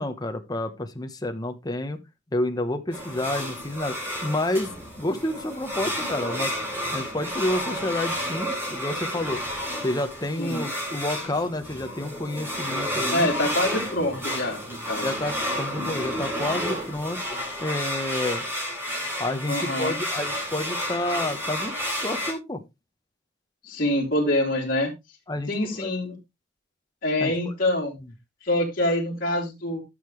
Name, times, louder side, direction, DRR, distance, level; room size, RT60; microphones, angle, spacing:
voice 1, 0.0-2.0 2.3-4.0 4.2-6.5 6.9-9.4 9.8-13.3 15.0-17.2 17.6-18.4 19.2-22.6 25.3-25.9 27.2-27.5, left 1 dB, 20° left, 1.1 m, -29 dB
sound 1, 2.9-22.3, equal, 10° right, 3.9 m, -31 dB
voice 2, 13.1-15.1 19.5-20.0 23.6-24.9 25.5-26.2 27.0-28.0 28.4-29.8, left 1 dB, 50° left, 3.0 m, -25 dB
12.0 x 6.8 x 3.2 m
head